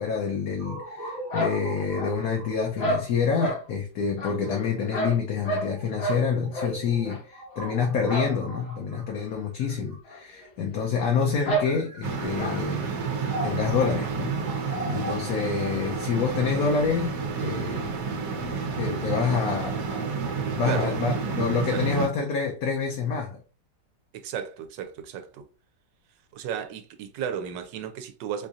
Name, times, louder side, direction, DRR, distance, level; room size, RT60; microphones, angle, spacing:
voice 1, 0.0-12.9 13.4-14.4 14.6-18.0 18.8-20.1 20.6-23.4, left 5 dB, 65° left, 1.1 m, -27 dB
sound 1, 0.6-10.4 11.2-18.1, right 1 dB, 10° right, 0.8 m, -40 dB
sound 2, 1.3-2.4 2.8-3.6 4.2-5.7 6.0-6.2 6.5-6.7 7.1-7.2 8.1-8.4 8.6-8.7 9.1-9.2 10.1-10.2 10.4-10.5 11.5-11.7 12.4-12.6, right 1 dB, 45° left, 1.0 m, -29 dB
sound 3, 12.0-22.1, right 5 dB, 65° right, 1.2 m, -30 dB
voice 2, 24.1-25.5 26.3-28.5, right 8 dB, 85° right, 1.3 m, -33 dB
4.5 x 2.6 x 2.4 m
omnidirectional pair, 1.9 m